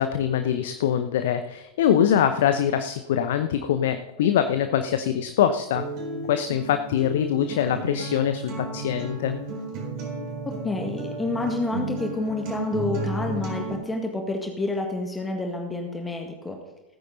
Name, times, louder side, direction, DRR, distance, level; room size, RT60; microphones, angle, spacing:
voice 1, 0.0-5.8 6.3-9.4, left 9 dB, 55° left, 9 dB, 0.8 m, -23 dB
Acoustic guitar, 5.7-13.7, right 2 dB, 40° right, 4.8 m, -33 dB
voice 2, 10.5-16.6, left 2 dB, 10° left, 2 dB, 1.8 m, -29 dB
17.5 x 9.9 x 4.0 m, 0.98 s
figure-of-eight pair, 90°, 0 cm